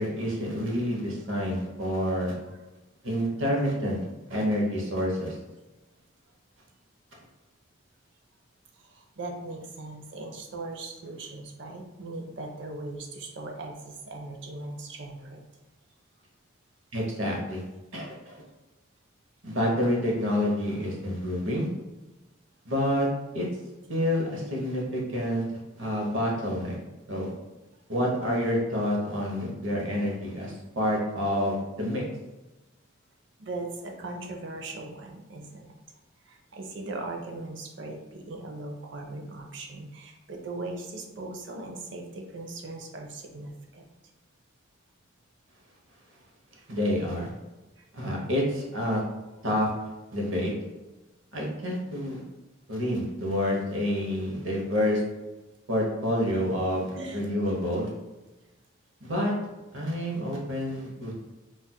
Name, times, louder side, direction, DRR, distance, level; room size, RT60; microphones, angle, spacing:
voice 1, 0.0-2.4 3.0-4.0 4.3-5.3 16.9-17.6 17.9-18.4 19.4-21.7 22.6-23.1 23.3-23.5 23.9-25.5 25.8-26.8 27.1-27.3 27.9-32.0 46.7-47.3 47.9-49.0 49.4-49.7 50.1-50.5 51.3-52.2 52.7-55.0 55.7-57.9 59.0-59.3 59.7-61.1, equal, 80° right, -2 dB, 0.9 m, -28 dB
voice 2, 8.8-15.5 33.4-35.7 36.3-43.8 46.6-46.7 47.8-47.9 56.9-57.2, right 2 dB, 65° right, 2 dB, 0.5 m, -39 dB
4.1 x 2.5 x 2.2 m, 1.1 s
head